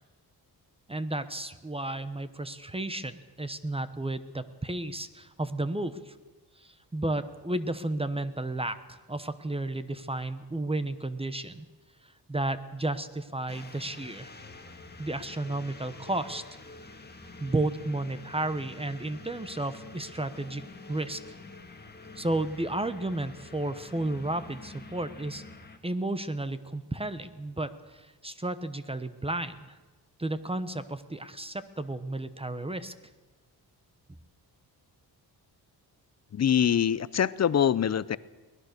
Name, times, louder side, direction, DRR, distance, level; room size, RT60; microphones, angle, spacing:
voice 1, 0.9-6.1 6.6-11.7 12.3-14.3 15.0-16.4 17.4-21.2 22.2-25.4 25.8-29.8 30.2-32.9, right 2 dB, 15° right, 12 dB, 1.0 m, -33 dB
sound 1, 13.5-25.8, left 3 dB, 25° left, 1.9 m, -47 dB
voice 2, 36.3-38.2, left 9 dB, 40° left, 18 dB, 0.6 m, -24 dB
23.0 x 18.5 x 6.7 m, 1.2 s
cardioid pair, 110°, 41 cm